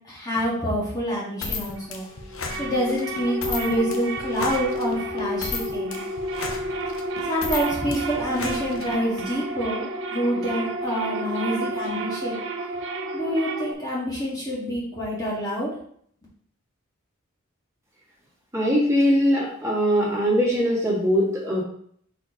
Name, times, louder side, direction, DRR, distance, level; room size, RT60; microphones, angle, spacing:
voice 1, 0.1-2.0 2.5-6.0 7.2-12.4 13.1-15.7, equal, 20° left, -7 dB, 1.7 m, -27 dB
sound 1, 1.4-9.3, left 4 dB, 85° left, 0.9 m, -34 dB
sound 2, 1.8-13.7, right 1 dB, 65° right, 0.7 m, -31 dB
voice 2, 18.5-21.6, equal, 15° right, -6 dB, 2.1 m, -21 dB
4.5 x 4.4 x 4.7 m, 0.62 s
head